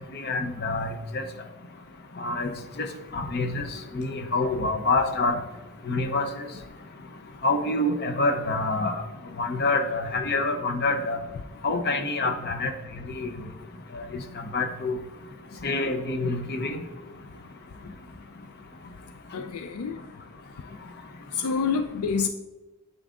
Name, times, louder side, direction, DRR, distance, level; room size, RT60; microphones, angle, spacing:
voice 1, 0.1-1.2 2.2-2.5 2.8-2.9 3.1-3.7 3.9-5.4 5.9-6.5 7.4-9.0 9.4-11.2 11.6-12.7 13.1-13.3 13.9-14.2 14.5-15.0 15.6-16.8, left 2 dB, 45° left, 0.7 m, -26 dB
voice 2, 19.3-20.0 21.3-22.3, left 5 dB, 75° left, 0.4 m, -27 dB
8.6 x 7.2 x 2.5 m
head